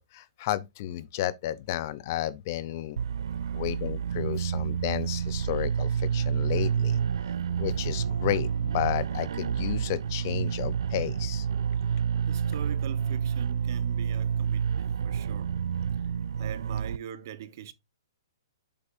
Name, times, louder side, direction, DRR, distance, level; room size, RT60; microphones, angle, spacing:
voice 1, 0.0-3.0 3.5-7.0 7.6-11.4, left 13 dB, 40° left, 0.6 m, -32 dB
sound 1, 3.0-17.0, right 7 dB, 75° right, 0.3 m, -29 dB
voice 2, 12.3-15.5 16.4-17.7, right 11 dB, 45° right, 1.0 m, -42 dB
7.9 x 6.8 x 2.6 m
hypercardioid pair, 160°, 2 cm